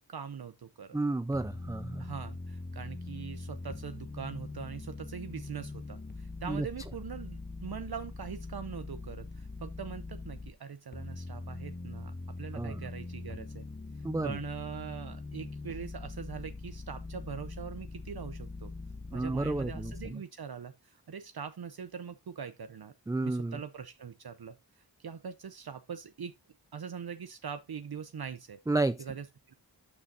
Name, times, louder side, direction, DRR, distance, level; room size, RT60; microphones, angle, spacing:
voice 1, 0.1-1.0 2.0-12.1 12.4-13.7 14.2-18.7 19.1-22.9 23.2-26.3 26.7-28.6 29.0-29.5, right 7 dB, 60° right, 0.7 m, -42 dB
voice 2, 0.9-2.0 6.5-6.7 12.5-12.8 14.0-14.4 19.1-20.2 23.1-23.6 28.7-29.0, right 2 dB, 10° right, 0.3 m, -31 dB
sound 1, 1.3-10.5 10.9-20.1, left 3 dB, 25° left, 1.1 m, -42 dB
12.0 x 6.2 x 2.7 m
wide cardioid pair, 50°, 42 cm